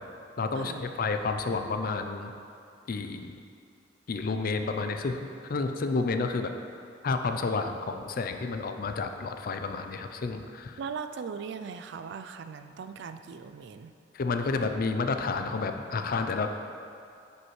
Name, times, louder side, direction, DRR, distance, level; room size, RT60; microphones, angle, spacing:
voice 1, 0.4-2.3 2.9-3.4 4.1-6.5 7.0-10.8 14.1-16.5, left 4 dB, 45° left, 6 dB, 0.4 m, -30 dB
voice 2, 10.8-13.9, right 6 dB, 60° right, 9 dB, 0.3 m, -39 dB
9.8 x 5.4 x 3.1 m, 2.5 s
head